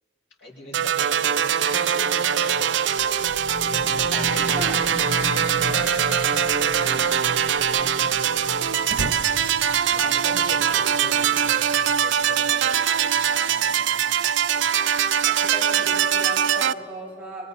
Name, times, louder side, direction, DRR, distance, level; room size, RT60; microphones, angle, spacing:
voice 1, 0.4-4.7 5.0-5.2 7.7-8.3 9.9-15.2 15.8-16.4, left 1 dB, 65° left, -2 dB, 5.8 m, -43 dB
sound 1, 0.7-16.7, right 8 dB, 70° right, 0.5 m, -22 dB
sound 2, 3.0-14.0, left 3 dB, 35° left, 0.5 m, -36 dB
voice 2, 4.1-4.8 5.1-5.2 5.7-6.6 15.2-17.5, right 1 dB, 10° right, -5 dB, 5.0 m, -37 dB
sound 3, 5.9-6.2 6.5-6.6 6.8-6.9 7.4-10.4, right 2 dB, 85° right, 1.1 m, -37 dB
28.5 x 24.0 x 4.2 m, 2.7 s
head